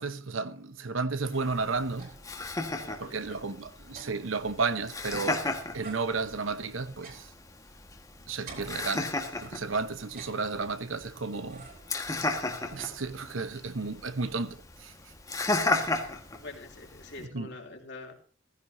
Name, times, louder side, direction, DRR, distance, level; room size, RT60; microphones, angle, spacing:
voice 1, 0.0-2.2 3.0-5.5 5.7-7.3 8.3-9.1 9.4-11.7 12.7-14.9 17.2-17.5, right 4 dB, 70° right, 0.9 m, -33 dB
sound 1, 1.2-2.4 2.8-2.9 3.1-5.4 5.8-8.0 8.5-9.5 10.0-10.9 11.5-12.0 12.4-13.5, right 3 dB, 45° right, 4.3 m, -51 dB
Laughter, 1.3-17.3, left 2 dB, 15° left, 1.5 m, -35 dB
voice 2, 2.7-3.4 16.1-18.1, left 3 dB, 55° left, 3.0 m, -45 dB
16.5 x 15.5 x 2.7 m
head